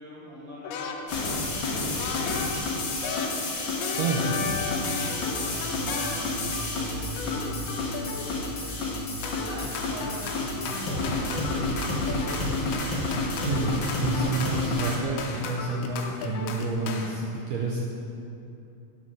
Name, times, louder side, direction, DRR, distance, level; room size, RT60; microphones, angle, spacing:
voice 1, 0.0-6.4 6.7-8.9 9.2-12.1, equal, 5° left, -9 dB, 1.7 m, -43 dB
sound 1, 0.6-1.5 2.0-6.9 7.2-8.4 9.2-17.2, left 5 dB, 80° left, 2.1 m, -35 dB
sound 2, 1.1-15.0, left 2 dB, 55° left, 1.4 m, -30 dB
sound 3, 3.8-14.3, right 1 dB, 55° right, 1.8 m, -39 dB
voice 2, 3.9-4.5 13.3-17.8, right 3 dB, 70° right, -3 dB, 1.8 m, -29 dB
9.5 x 5.9 x 6.3 m, 2.7 s
omnidirectional pair, 3.8 m